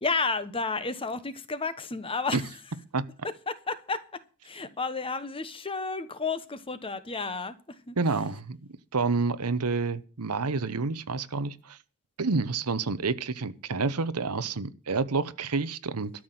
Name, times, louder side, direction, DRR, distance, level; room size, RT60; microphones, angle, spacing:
voice 1, 0.0-2.5 3.2-8.0, left 4 dB, 25° left, 1.1 m, -32 dB
voice 2, 8.0-8.6 8.9-11.8 12.2-16.1, right 4 dB, 90° right, 0.9 m, -28 dB
13.0 x 6.1 x 9.2 m
head